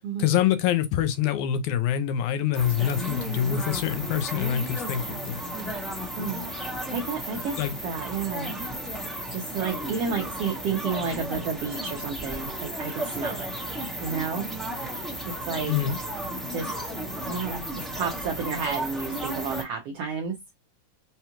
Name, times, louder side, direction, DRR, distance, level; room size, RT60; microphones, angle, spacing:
voice 1, 0.2-5.4 7.6-7.7 15.7-16.0, left 10 dB, 80° left, 1.9 m, -25 dB
sound 1, 2.5-19.6, right 1 dB, ahead, 0.3 m, -34 dB
voice 2, 6.9-8.5 9.3-13.5 14.0-14.5 15.2-15.7 16.5-16.7 17.2-20.4, right 5 dB, 80° right, 1.4 m, -31 dB
5.4 x 2.3 x 2.8 m
omnidirectional pair, 3.6 m